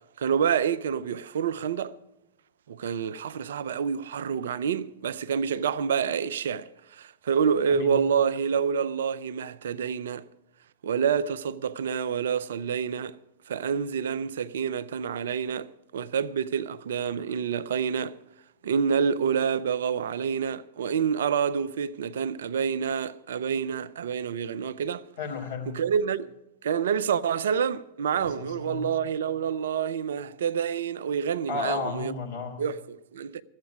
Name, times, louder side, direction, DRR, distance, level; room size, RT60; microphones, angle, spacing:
voice 1, 0.2-1.9 2.7-10.3 10.8-13.2 13.5-18.2 18.6-25.0 25.7-26.3 26.6-32.1 32.6-33.4, right 7 dB, 65° right, 0.4 m, -28 dB
voice 2, 7.7-8.0 25.2-25.7 28.1-28.9 31.5-32.6, left 4 dB, 60° left, 2.8 m, -33 dB
13.0 x 8.1 x 9.1 m
figure-of-eight pair, 95°, 0 cm